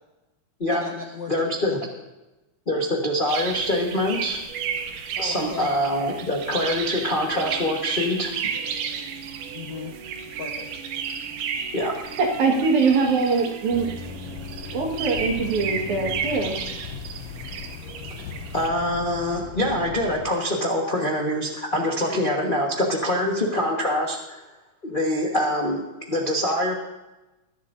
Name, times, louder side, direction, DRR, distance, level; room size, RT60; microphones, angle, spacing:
voice 1, 0.7-1.8 5.2-5.7 9.5-9.9 10.3-10.8, left 5 dB, 55° left, -1 dB, 1.2 m, -37 dB
voice 2, 1.3-1.8 2.7-4.4 5.2-8.3 11.7-12.0 18.5-24.4 24.8-26.7, left 1 dB, 35° left, -2 dB, 0.7 m, -24 dB
sound 1, 3.3-18.7, right 7 dB, 90° right, 2.6 m, -33 dB
sound 2, 5.9-16.2, right 6 dB, 55° right, 2.4 m, -44 dB
voice 3, 12.2-13.9 14.7-16.6, right 4 dB, 70° right, 1 dB, 3.2 m, -22 dB
sound 3, 13.7-20.3, left 8 dB, 85° left, 1.4 m, -38 dB
20.5 x 11.5 x 2.7 m, 1.0 s
omnidirectional pair, 3.6 m